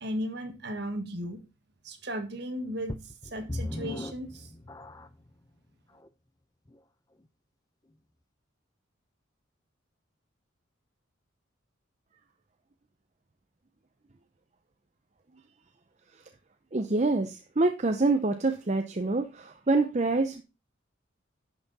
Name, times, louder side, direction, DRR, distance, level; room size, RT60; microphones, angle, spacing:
voice 1, 0.0-1.4 1.8-4.5, equal, 55° right, 7 dB, 1.7 m, -36 dB
sound 1, 2.9-5.3 6.0-6.1 6.7-6.8, left 1 dB, 20° left, 0.5 m, -38 dB
voice 2, 16.7-20.4, right 3 dB, 35° right, 7 dB, 0.6 m, -26 dB
11.0 x 6.0 x 4.1 m, 0.28 s
head